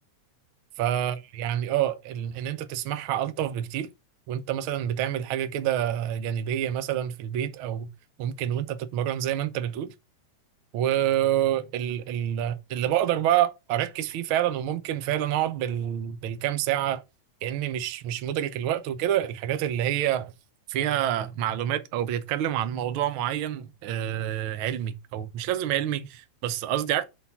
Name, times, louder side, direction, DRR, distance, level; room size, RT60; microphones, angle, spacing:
voice 1, 0.8-3.9 4.3-7.9 8.2-9.9 10.7-17.0 17.4-20.3 20.7-27.0, right 11 dB, 75° right, 1.2 m, -27 dB
8.4 x 3.8 x 5.6 m
omnidirectional pair, 3.4 m